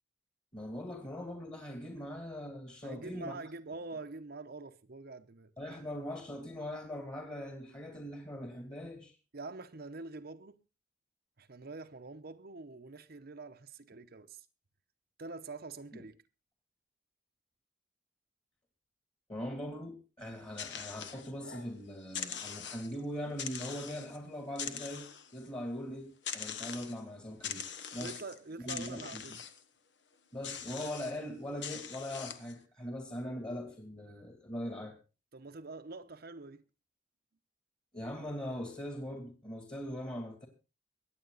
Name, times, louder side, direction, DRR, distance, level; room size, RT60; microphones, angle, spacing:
voice 1, 0.5-3.4 5.6-9.1 15.9-16.0 19.3-25.0 25.3-28.2 28.6-29.2 30.3-34.9 37.9-40.5, equal, 25° left, 2.6 m, -41 dB
voice 2, 2.8-5.5 9.3-10.6 11.4-14.5 15.2-16.2 28.0-29.4 35.3-36.6, right 3 dB, 55° right, 0.8 m, -45 dB
sound 1, 20.2-21.7 22.0-23.0 23.4-24.2 24.5-25.5 26.2-27.0 27.4-28.4 28.7-29.6 30.4-31.2 31.6-32.5, left 8 dB, 65° left, 1.3 m, -42 dB
24.0 x 8.8 x 4.0 m
head